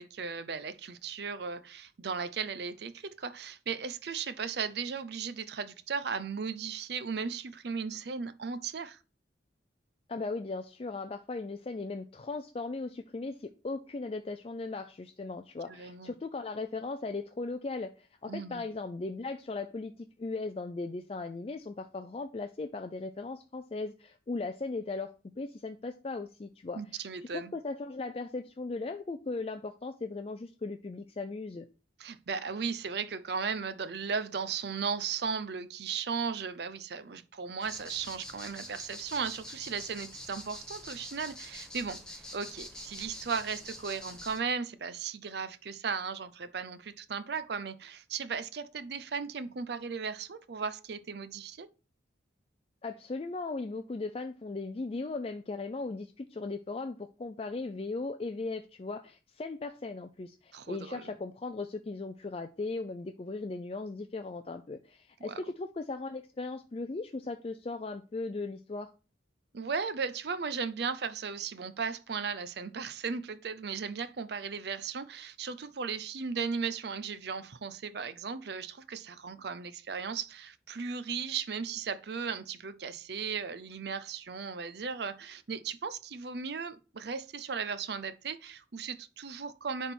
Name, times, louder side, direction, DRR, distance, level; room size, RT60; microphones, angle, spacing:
voice 1, 0.0-9.0 15.7-16.1 18.3-18.6 26.7-27.5 32.0-51.7 60.5-61.1 65.2-65.4 69.5-89.9, right 5 dB, 55° right, 0.5 m, -36 dB
voice 2, 10.1-26.8 27.3-31.7 52.8-68.9, left 3 dB, 30° left, 0.4 m, -38 dB
sound 1, 37.6-44.4, left 1 dB, 5° left, 0.9 m, -46 dB
9.9 x 3.6 x 4.3 m
head